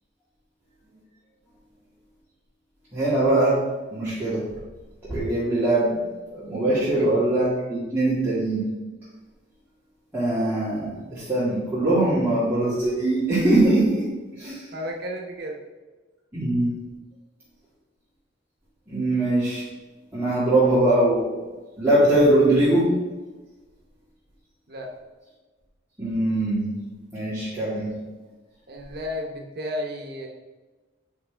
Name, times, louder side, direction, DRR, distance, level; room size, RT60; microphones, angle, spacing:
voice 1, 2.9-3.6 3.9-4.4 5.1-6.0 6.3-8.7 10.1-14.0 14.4-14.6 16.3-16.7 18.9-19.6 20.1-21.3 21.8-22.9 26.0-26.7 27.1-27.9, right 1 dB, 10° right, -13 dB, 2.2 m, -21 dB
voice 2, 14.4-15.6 24.7-24.9 28.7-30.3, left 1 dB, 60° right, 1 dB, 1.0 m, -33 dB
8.5 x 5.3 x 3.4 m, 1.2 s
head